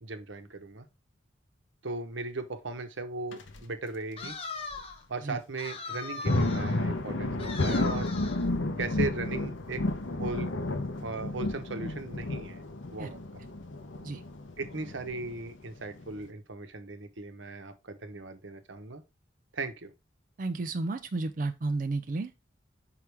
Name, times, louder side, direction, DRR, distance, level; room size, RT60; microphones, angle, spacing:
voice 1, 0.0-0.9 1.8-4.4 5.1-8.1 8.8-9.8 10.1-10.5 11.0-12.6 12.9-13.4 14.6-19.0 19.5-19.9, right 3 dB, 75° right, 1.0 m, -37 dB
sound 1, 3.3-3.6 4.2-4.3 4.7-4.8 5.9-16.3, left 2 dB, 80° left, 0.9 m, -32 dB
sound 2, 4.2-5.1 5.6-6.8 7.4-8.5, left 4 dB, 30° left, 0.9 m, -40 dB
voice 2, 20.4-22.4, right 3 dB, 45° right, 0.4 m, -32 dB
5.8 x 4.8 x 3.4 m
head